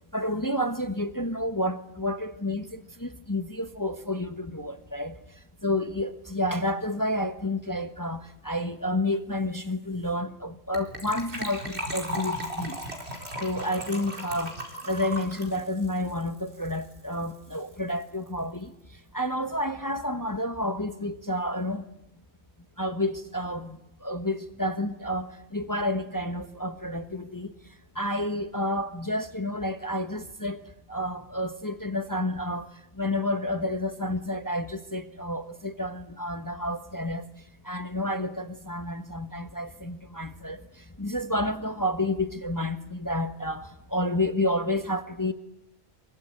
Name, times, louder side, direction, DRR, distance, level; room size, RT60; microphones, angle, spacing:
voice 1, 0.1-12.8 13.4-14.6 14.8-21.9 22.8-30.6 30.9-37.3 37.6-45.3, left 1 dB, 15° left, 1.1 m, -30 dB
Gurgling / Trickle dribble / Fill (with liquid), 10.7-17.0 17.2-17.3 17.5-17.7 18.0-18.1, equal, 50° right, 4.6 m, -36 dB
25.0 x 22.5 x 9.0 m
omnidirectional pair, 1.4 m